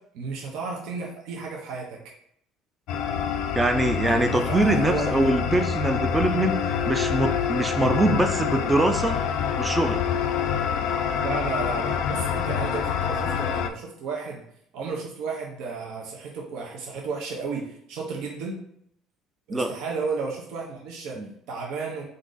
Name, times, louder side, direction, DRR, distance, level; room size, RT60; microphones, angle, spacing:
voice 1, 0.1-2.0 4.1-5.2 11.2-14.4 14.7-18.6 19.5-22.0, right 4 dB, 65° right, -2 dB, 0.8 m, -33 dB
sound 1, 2.9-13.7, left 7 dB, 60° left, 0.4 m, -26 dB
voice 2, 3.5-9.2 9.6-10.0 19.5-19.7 21.2-21.3, right 1 dB, 10° right, 6 dB, 0.4 m, -23 dB
3.8 x 2.6 x 3.8 m, 0.71 s
cardioid pair, 165°, 0 cm